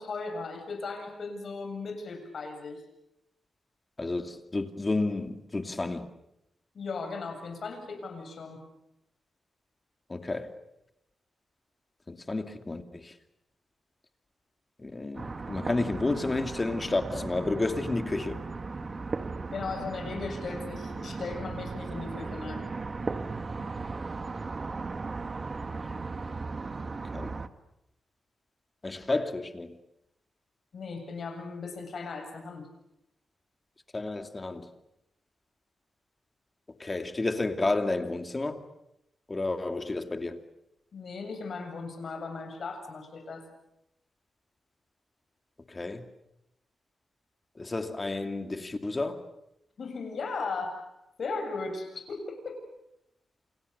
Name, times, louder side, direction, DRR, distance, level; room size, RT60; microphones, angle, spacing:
voice 1, 0.0-2.8 6.7-8.6 19.5-22.7 30.7-32.7 40.9-43.5 49.8-50.9 51.2-52.6, left 4 dB, 60° left, 7.6 m, -37 dB
voice 2, 4.0-6.1 10.1-10.5 12.1-13.1 14.8-18.4 25.9-26.0 27.1-27.3 28.8-29.8 33.9-34.7 36.8-38.6 39.3-40.4 45.7-46.0 47.6-49.2, left 2 dB, 25° left, 2.6 m, -31 dB
sound 1, 15.1-27.5, right 3 dB, 40° right, 1.6 m, -36 dB
29.5 x 28.5 x 6.9 m
cardioid pair, 85°, 0 cm